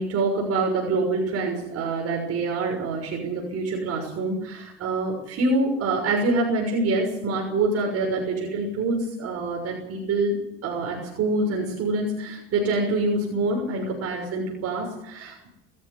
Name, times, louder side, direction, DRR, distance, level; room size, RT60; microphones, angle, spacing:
voice 1, 0.0-10.4 10.6-15.5, right 3 dB, 50° right, 1 dB, 6.4 m, -26 dB
21.0 x 14.5 x 8.5 m, 0.86 s
supercardioid pair, 100°, 31 cm